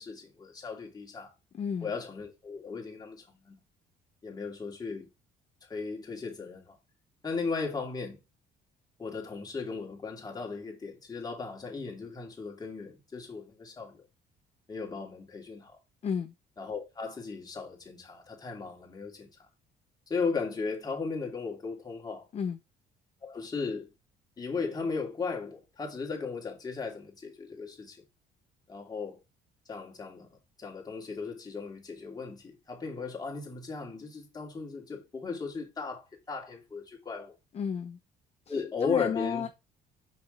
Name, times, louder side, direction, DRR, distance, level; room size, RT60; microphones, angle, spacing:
voice 1, 0.0-1.3 1.8-3.6 4.2-5.1 5.7-6.8 7.2-8.2 9.0-14.0 14.7-15.8 16.6-19.3 20.1-22.3 23.2-23.9 24.4-28.0 28.7-29.2 29.7-30.3 30.6-37.3 38.5-39.5, left 5 dB, 25° left, 2.6 m, -36 dB
voice 2, 1.5-1.9 16.0-16.3 22.3-22.6 37.5-38.0 38.5-39.5, left 7 dB, 40° left, 0.8 m, -33 dB
5.8 x 5.8 x 3.8 m
cardioid pair, 110°, 17 cm